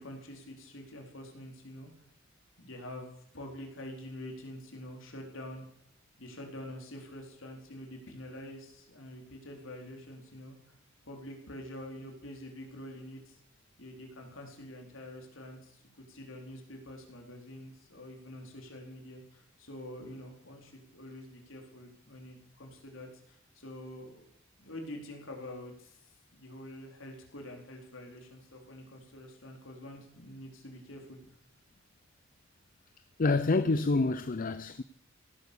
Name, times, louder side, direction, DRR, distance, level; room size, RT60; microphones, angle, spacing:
voice 1, 0.0-1.9 2.6-5.7 6.2-10.6 11.0-13.4 13.8-24.3 24.6-31.2, left 1 dB, 90° left, 4.1 m, -46 dB
voice 2, 33.2-34.8, left 3 dB, 45° left, 0.6 m, -27 dB
17.5 x 11.5 x 7.0 m
head